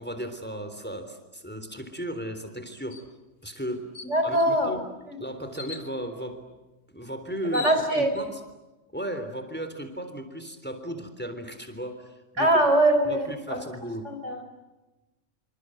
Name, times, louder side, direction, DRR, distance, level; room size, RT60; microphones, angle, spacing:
voice 1, 0.0-3.0 3.4-3.8 4.2-4.8 5.2-6.4 6.9-7.7 8.0-8.4 8.9-12.6 13.1-14.1, equal, 10° left, 8 dB, 3.5 m, -35 dB
sound 1, 2.9-3.1 3.5-3.6 3.9-4.5 5.5-5.9 7.0-7.1 7.4-8.3, left 4 dB, 85° left, 2.4 m, -40 dB
voice 2, 4.0-4.7 5.1-5.2 7.5-8.1 12.4-13.6 14.0-14.4, right 1 dB, 70° right, 7 dB, 4.8 m, -23 dB
28.0 x 25.5 x 7.8 m, 1.1 s
omnidirectional pair, 1.3 m